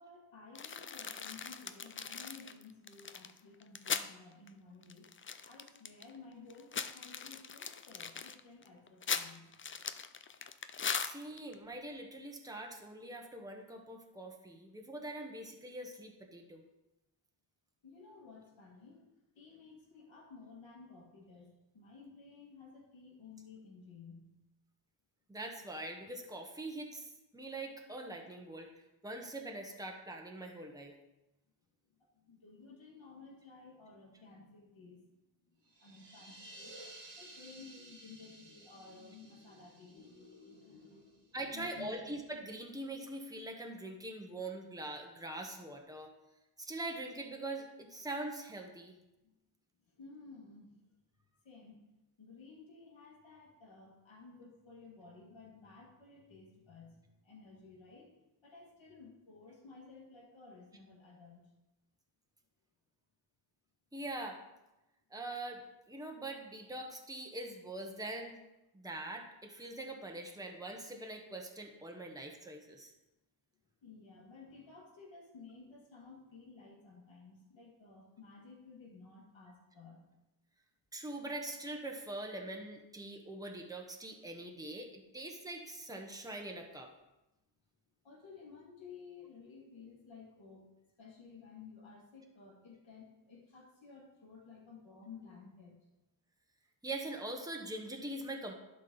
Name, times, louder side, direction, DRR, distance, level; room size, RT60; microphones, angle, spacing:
voice 1, 0.0-5.1 5.4-9.5 17.8-19.1 19.4-24.3 32.1-35.1 35.5-42.0 49.2-49.3 49.9-50.8 51.4-51.8 52.2-58.1 58.4-61.4 73.8-80.0 88.0-90.7 91.0-95.8, left 4 dB, 80° left, -3 dB, 2.1 m, -55 dB
sound 1, 0.6-4.1 4.5-4.6 4.8-6.1 6.5-11.5, left 6 dB, 30° left, 0.4 m, -40 dB
voice 2, 11.0-16.6 25.3-28.7 29.0-30.9 41.3-46.1 46.6-48.9 63.9-64.4 65.1-68.4 68.7-72.9 80.9-86.9 96.8-98.5, right 2 dB, 10° right, 2 dB, 1.1 m, -43 dB
sound 2, 35.6-41.3, right 1 dB, 70° right, 1.7 m, -55 dB
11.5 x 4.2 x 4.0 m, 0.96 s
wide cardioid pair, 75°, 45 cm